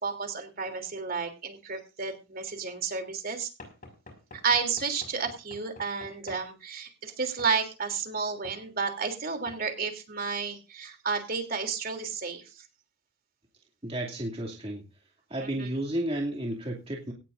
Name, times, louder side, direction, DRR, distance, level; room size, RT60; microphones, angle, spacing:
voice 1, 0.0-3.5 4.4-12.4 15.4-15.7, right 5 dB, 45° right, 6 dB, 3.2 m, -31 dB
Knock / Wood, 3.6-6.5 7.4-7.6 8.4-8.6 9.5-9.6, left 2 dB, 40° left, 5.6 m, -48 dB
voice 2, 13.8-14.9 15.3-17.1, right 1 dB, 25° right, -1 dB, 2.5 m, -32 dB
18.0 x 15.0 x 2.6 m, 0.31 s
head